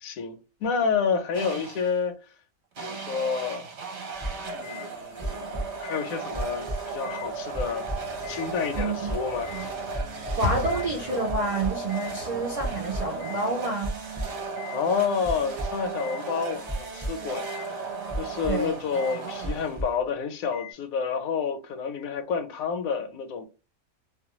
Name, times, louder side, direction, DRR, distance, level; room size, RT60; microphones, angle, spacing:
voice 1, 0.0-2.1 2.8-3.6 4.5-7.9 8.3-9.5 14.7-17.9 18.2-23.5, left 6 dB, 75° left, 1.0 m, -29 dB
sound 1, 1.3-2.0 2.8-20.1, right 4 dB, 60° right, 0.9 m, -36 dB
sound 2, 4.2-4.9 5.2-6.1 6.3-7.3 7.5-8.5 8.7-9.7 9.9-10.9 11.3-12.1 12.6-13.4 13.8-14.8 15.2-16.2 16.7-17.7 18.1-18.7 18.9-19.2 19.4-20.0 20.5-20.7, equal, ahead, 0.5 m, -34 dB
Sliding door / Slam, 7.0-14.0, left 4 dB, 60° left, 0.8 m, -39 dB
voice 2, 8.7-9.1 9.5-9.7 10.4-14.0 18.5-18.7, right 2 dB, 80° right, 0.3 m, -28 dB
2.4 x 2.2 x 2.9 m
omnidirectional pair, 1.5 m